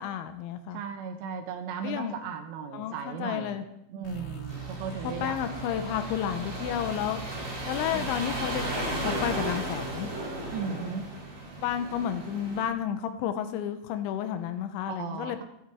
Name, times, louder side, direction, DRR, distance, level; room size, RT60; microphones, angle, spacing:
voice 1, 0.0-0.8 1.8-2.2 2.7-3.6 5.0-7.2 7.7-10.1 11.6-15.4, left 9 dB, 85° left, 9 dB, 2.8 m, -31 dB
voice 2, 0.7-3.6 3.9-5.4 7.9-8.2 10.5-11.1 14.9-15.4, right 6 dB, 75° right, 5 dB, 2.7 m, -36 dB
sound 1, 4.0-9.6, right 4 dB, 65° left, 2.4 m, -41 dB
sound 2, 4.5-12.6, right 1 dB, 50° right, 0.9 m, -35 dB
17.0 x 8.9 x 3.5 m, 0.79 s
omnidirectional pair, 5.9 m